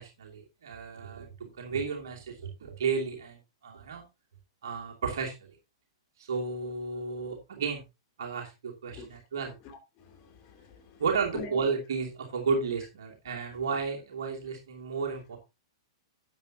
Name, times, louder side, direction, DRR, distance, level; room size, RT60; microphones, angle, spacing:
voice 1, 0.0-3.4 3.6-4.0 4.6-5.3 6.2-7.8 8.2-9.5 11.0-15.4, right 5 dB, 60° right, -1 dB, 2.7 m, -33 dB
voice 2, 9.4-11.0 11.3-11.6, left 3 dB, 35° left, 4 dB, 3.0 m, -44 dB
12.0 x 8.2 x 2.8 m, 0.25 s
figure-of-eight pair, 105°, 2 cm